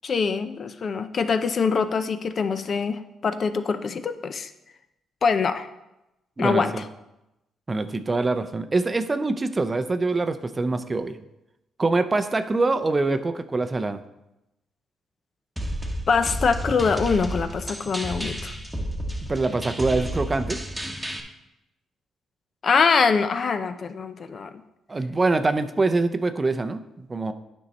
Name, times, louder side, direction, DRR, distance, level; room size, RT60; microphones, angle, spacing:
voice 1, 0.0-4.5 5.2-5.7 6.4-6.9 16.1-18.5 19.9-20.0 22.6-24.5, left 5 dB, 45° left, 10 dB, 0.5 m, -24 dB
voice 2, 6.4-6.8 7.7-11.2 11.8-14.0 19.3-20.6 24.9-27.3, right 3 dB, 25° right, 10 dB, 0.5 m, -24 dB
sound 1, 15.6-21.2, equal, 5° right, 1.1 m, -31 dB
9.4 x 5.4 x 4.2 m, 0.93 s
cardioid pair, 90°, 0 cm